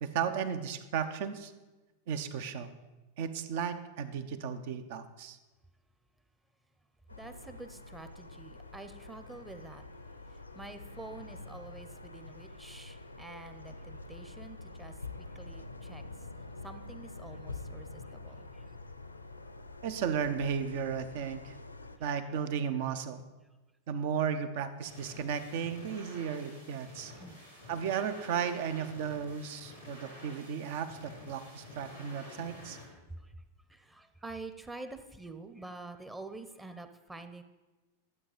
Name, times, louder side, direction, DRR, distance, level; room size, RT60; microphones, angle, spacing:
voice 1, 0.0-1.5 2.1-2.7 3.2-5.4 19.8-21.5 22.0-23.2 23.9-27.1 27.7-32.8, right 7 dB, 50° right, 11 dB, 0.8 m, -34 dB
sound 1, 7.1-22.0, left 3 dB, 85° left, 0.6 m, -47 dB
voice 2, 7.1-9.8 10.3-16.0 16.6-18.6 27.1-27.4 33.1-33.4 33.7-37.4, right 2 dB, 10° right, 8 dB, 0.8 m, -47 dB
sound 2, 24.8-32.8, left 2 dB, 90° right, 3.3 m, -50 dB
12.0 x 8.1 x 5.1 m, 1.2 s
figure-of-eight pair, 90°, 0 cm